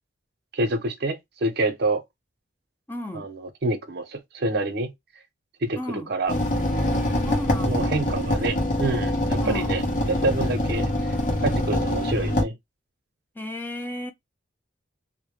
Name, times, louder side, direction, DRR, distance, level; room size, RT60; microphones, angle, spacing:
voice 1, 0.5-2.0 3.1-4.9 5.6-6.4 7.6-10.9 11.4-12.5, right 2 dB, 55° right, 0.6 m, -27 dB
voice 2, 2.9-3.3 5.8-6.1 7.1-8.0 9.4-9.7 13.4-14.1, left 1 dB, 10° left, 0.4 m, -33 dB
sound 1, 6.3-12.4, left 1 dB, 45° left, 0.7 m, -24 dB
2.1 x 2.0 x 3.0 m
head